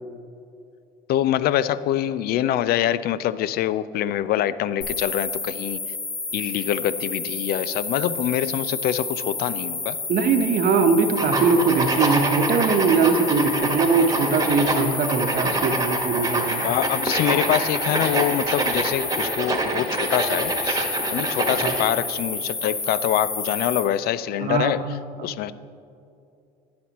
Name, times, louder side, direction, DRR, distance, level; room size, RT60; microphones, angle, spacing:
voice 1, 1.1-5.8 6.3-10.0 16.6-20.8 21.1-24.8 25.2-25.5, left 12 dB, 55° left, 17 dB, 0.4 m, -25 dB
sound 1, 4.8-23.8, left 3 dB, 85° left, 2.3 m, -31 dB
voice 2, 10.1-16.7 21.5-21.7 24.4-24.7 25.2-25.3, right 4 dB, 45° right, 7 dB, 1.0 m, -21 dB
sound 2, 11.2-21.9, right 2 dB, 20° right, 1.5 m, -26 dB
11.0 x 9.5 x 3.0 m, 2.6 s
hypercardioid pair, 75°, 20 cm